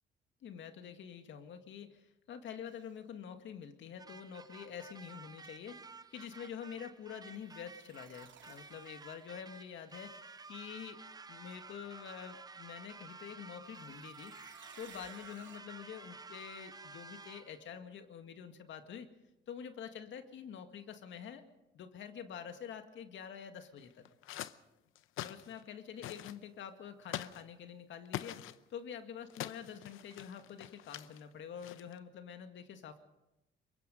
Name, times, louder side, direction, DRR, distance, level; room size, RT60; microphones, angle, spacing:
voice 1, 0.4-11.0 11.3-14.3 14.8-19.1 19.5-21.4 21.7-24.0 25.2-33.0, left 8 dB, 75° left, 7 dB, 2.0 m, -47 dB
sound 1, 2.7-3.0 7.4-9.4 9.9-10.5 13.6-15.6, right 8 dB, 70° right, 2.3 m, -60 dB
sound 2, 4.0-17.7, right 4 dB, 20° right, 0.7 m, -52 dB
sound 3, 23.8-24.6 25.0-25.7 26.0-26.4 27.1-27.4 28.1-28.6 29.3-31.2 31.6-32.0, left 14 dB, 90° left, 0.7 m, -44 dB
23.5 x 21.5 x 5.3 m, 0.93 s
cardioid pair, 90°, 20 cm